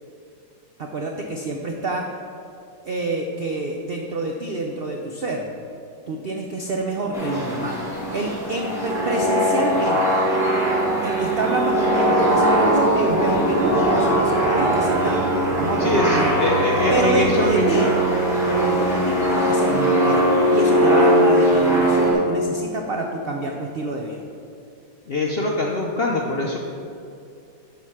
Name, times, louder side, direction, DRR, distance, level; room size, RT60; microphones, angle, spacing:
voice 1, 0.8-2.1 2.8-5.5 6.1-7.8 8.1-10.2 11.0-15.3 15.6-16.4 16.9-17.9 18.5-24.2, right 2 dB, 90° right, 1 dB, 0.5 m, -27 dB
sound 1, 7.1-22.1, equal, ahead, 1.9 m, -20 dB
sound 2, 12.1-17.5, right 2 dB, 35° right, 1.7 m, -24 dB
voice 2, 15.8-17.9 25.1-26.6, left 2 dB, 65° left, -1 dB, 0.6 m, -23 dB
11.0 x 3.9 x 5.7 m, 2.5 s
omnidirectional pair, 1.8 m